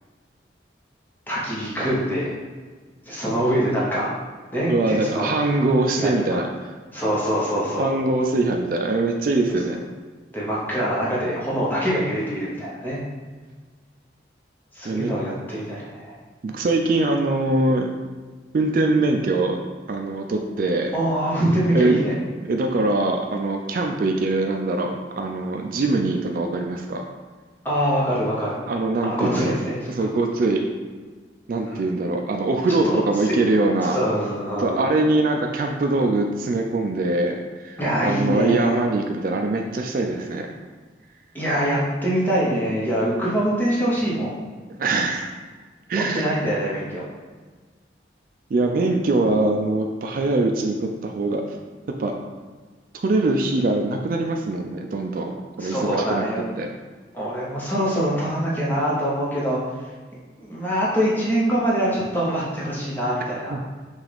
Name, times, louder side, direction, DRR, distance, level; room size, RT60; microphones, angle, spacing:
voice 1, 1.3-2.4 3.0-4.1 4.5-5.3 6.0-6.4 6.9-7.9 10.3-13.0 14.7-16.1 20.9-22.1 27.6-28.6 29.0-29.9 31.7-31.8 32.7-33.3 33.9-35.0 37.8-38.8 41.3-44.4 45.9-47.0 55.6-56.5 57.1-59.9 60.4-63.5, equal, 10° left, -7 dB, 0.9 m, -24 dB
voice 2, 4.7-6.5 7.8-9.8 14.8-15.1 16.4-17.9 18.5-19.6 19.9-20.9 21.7-22.0 22.5-27.0 28.7-29.5 29.9-30.6 31.5-34.0 34.6-40.5 44.7-45.3 45.9-46.3 48.5-51.4 52.0-52.1 52.9-56.2 56.6-56.7 63.5-63.6, right 2 dB, 50° right, 3 dB, 0.3 m, -22 dB
6.0 x 2.4 x 3.4 m, 1.4 s
head